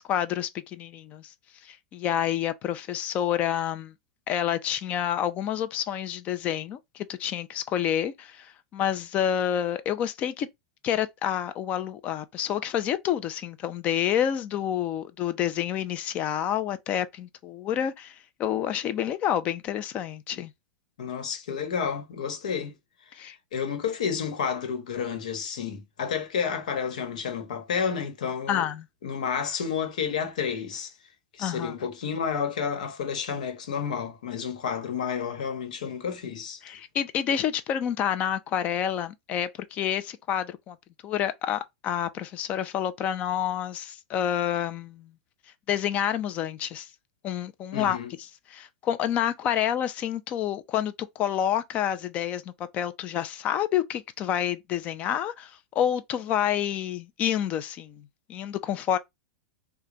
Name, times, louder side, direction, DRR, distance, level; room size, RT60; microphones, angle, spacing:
voice 1, 0.0-1.3 1.6-3.9 4.3-10.5 10.8-20.5 23.2-23.4 28.5-28.9 31.4-31.7 36.6-40.8 41.0-45.1 45.7-46.9 47.2-48.0 48.5-59.0, left 10 dB, 35° left, 0.5 m, -28 dB
voice 2, 21.0-22.7 23.1-28.7 29.0-30.9 31.3-36.6 47.7-48.1, left 6 dB, 85° left, 1.2 m, -31 dB
3.2 x 2.3 x 3.8 m
supercardioid pair, 135°, 4 cm